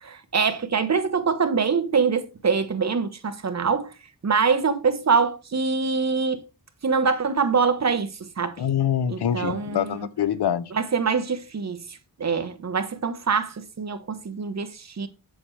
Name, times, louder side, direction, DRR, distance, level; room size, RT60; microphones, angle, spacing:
voice 1, 0.0-3.9 4.2-6.4 6.8-8.1 8.4-8.6 9.1-10.1 10.7-15.1, right 5 dB, 45° right, 1.1 m, -24 dB
voice 2, 8.6-10.7, left 9 dB, 85° left, 0.7 m, -25 dB
7.7 x 7.0 x 3.2 m
wide cardioid pair, 120°, 39 cm